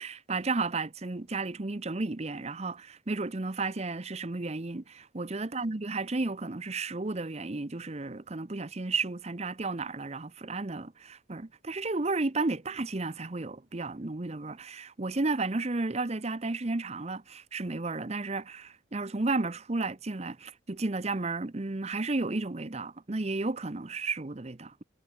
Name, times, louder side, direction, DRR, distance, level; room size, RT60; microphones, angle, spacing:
voice 1, 0.0-24.8, right 3 dB, 35° right, 0.8 m, -33 dB
head